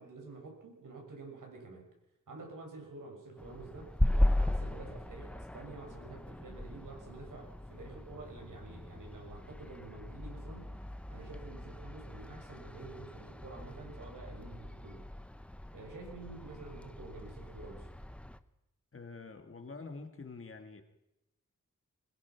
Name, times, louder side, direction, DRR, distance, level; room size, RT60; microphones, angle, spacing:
voice 1, 0.0-1.9 2.3-3.9 4.4-15.1 15.7-17.9, right 3 dB, 75° right, 6.2 m, -49 dB
sound 1, 3.4-18.4, left 1 dB, 5° left, 0.8 m, -37 dB
voice 2, 18.9-20.8, left 4 dB, 40° left, 2.3 m, -46 dB
22.5 x 21.0 x 6.0 m
wide cardioid pair, 150°, 32 cm